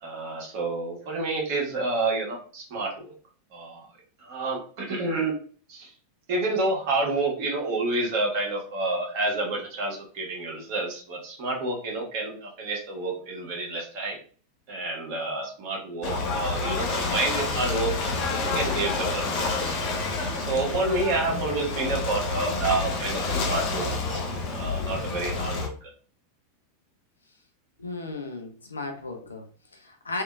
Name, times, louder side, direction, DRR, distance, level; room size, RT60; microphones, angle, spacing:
voice 1, 0.0-3.1 3.5-3.9 4.2-5.3 5.7-5.9 6.3-14.2 14.7-17.9 18.5-19.4 19.6-19.8 20.3-25.7, right 2 dB, 50° right, 1.4 m, -29 dB
Ocean / Boat Water vehicle, 16.0-25.7, left 3 dB, 45° left, 0.7 m, -28 dB
voice 2, 27.8-30.2, left 3 dB, 80° left, 0.6 m, -35 dB
3.4 x 2.8 x 2.4 m
figure-of-eight pair, 90°, 0 cm